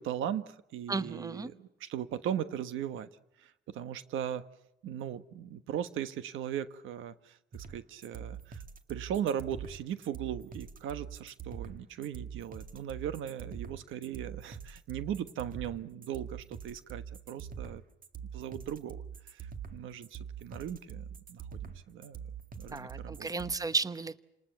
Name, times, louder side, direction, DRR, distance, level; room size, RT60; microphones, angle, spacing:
voice 1, 0.0-3.1 3.4-4.5 4.8-8.6 8.9-17.8 18.3-22.2 22.6-23.3, right 9 dB, 85° right, 12 dB, 1.3 m, -38 dB
voice 2, 0.9-1.5 22.7-24.2, right 3 dB, 15° right, 14 dB, 1.0 m, -33 dB
sound 1, 7.5-23.5, right 7 dB, 45° right, 2.0 m, -44 dB
29.0 x 19.5 x 7.2 m, 0.83 s
cardioid pair, 90°, 20 cm